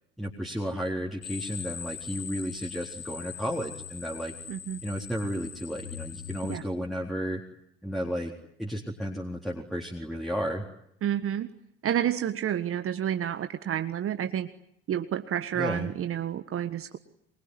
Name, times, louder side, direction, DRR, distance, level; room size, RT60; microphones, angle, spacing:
voice 1, 0.2-4.3 4.8-7.4 7.8-8.3 8.6-10.6 15.6-15.9, equal, ahead, -2 dB, 3.9 m, -33 dB
sound 1, 1.2-6.6, left 8 dB, 50° left, 4.5 m, -41 dB
voice 2, 4.5-4.8 6.5-6.6 11.0-11.5 11.8-14.5 14.9-17.0, right 10 dB, 45° right, 9 dB, 1.6 m, -29 dB
25.0 x 24.0 x 9.8 m, 0.76 s
figure-of-eight pair, 55°, 32 cm